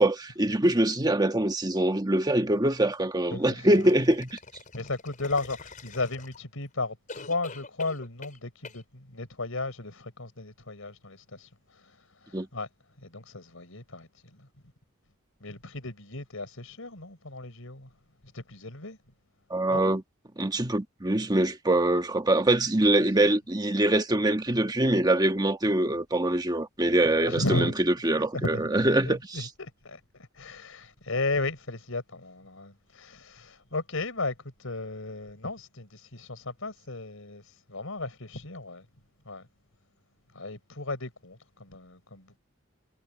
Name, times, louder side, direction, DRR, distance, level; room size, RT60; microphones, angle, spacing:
voice 1, 0.0-4.4 12.3-12.5 19.5-20.0 20.4-27.7 28.0-29.5, right 1 dB, 20° right, 1.5 m, -24 dB
voice 2, 3.3-3.8 4.7-12.7 13.0-14.5 15.4-17.9 18.3-19.0 19.7-19.8 27.1-27.7 28.1-30.0 30.4-34.3 34.6-37.4 37.7-38.9 39.3-39.5 40.3-42.4, left 2 dB, 80° left, 4.4 m, -35 dB
sound 1, 3.7-6.6 7.1-8.4 8.6-8.8, left 4 dB, 40° left, 4.9 m, -45 dB
head